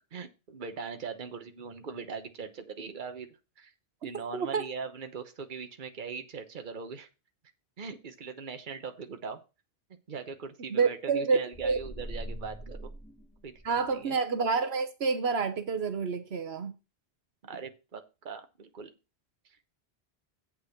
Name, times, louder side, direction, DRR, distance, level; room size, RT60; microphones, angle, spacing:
voice 1, 0.1-3.3 3.6-3.7 4.0-7.1 7.8-9.4 10.1-12.9 13.4-13.5 13.8-14.2 17.4-18.9 19.4-19.7, right 5 dB, 50° right, 1.2 m, -40 dB
voice 2, 4.3-4.6 10.7-11.8 13.6-16.7, right 5 dB, 75° right, 1.2 m, -28 dB
sound 1, 11.5-13.9, right 1 dB, 5° left, 2.8 m, -42 dB
8.3 x 6.1 x 5.8 m
omnidirectional pair, 1.1 m